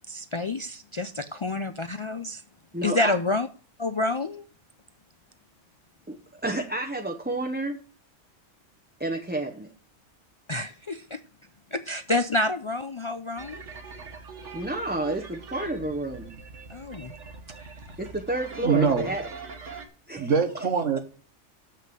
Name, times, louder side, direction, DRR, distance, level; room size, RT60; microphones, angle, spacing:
voice 1, 0.1-2.4 2.8-3.5 3.8-4.4 10.5-11.2 11.7-13.6 16.7-17.1 17.6-17.7, left 2 dB, 55° left, 9 dB, 0.3 m, -28 dB
voice 2, 2.7-3.1 6.1-7.8 9.0-9.7 14.5-16.3 18.0-19.2 20.1-20.3, right 1 dB, 10° right, 0 dB, 0.7 m, -30 dB
sound 1, 13.4-19.9, right 4 dB, 75° right, 1.6 m, -42 dB
voice 3, 18.6-19.1 20.1-21.0, right 6 dB, 90° right, 8 dB, 1.6 m, -23 dB
7.4 x 6.4 x 7.8 m, 0.40 s
omnidirectional pair, 1.2 m